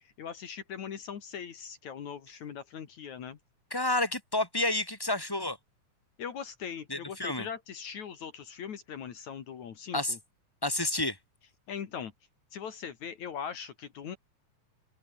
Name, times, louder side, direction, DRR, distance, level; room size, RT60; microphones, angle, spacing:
voice 1, 0.2-3.4 6.2-10.2 11.7-12.1 12.5-14.2, left 7 dB, 70° left, 3.4 m, -40 dB
voice 2, 3.7-5.6 6.9-7.5 9.9-10.2 10.6-11.2, left 2 dB, 5° left, 5.3 m, -30 dB
open air
omnidirectional pair, 3.5 m